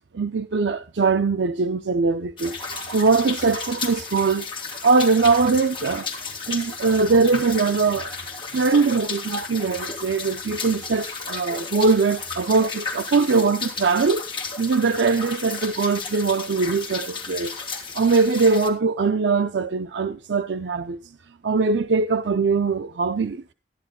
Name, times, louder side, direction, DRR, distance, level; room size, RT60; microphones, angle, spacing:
voice 1, 0.0-4.5 4.8-8.1 8.5-14.2 14.6-17.5 17.9-21.0 21.4-23.4, right 4 dB, 80° right, 0.5 m, -21 dB
sound 1, 2.4-18.7, left 4 dB, 30° left, 2.8 m, -33 dB
14.0 x 11.0 x 3.7 m
head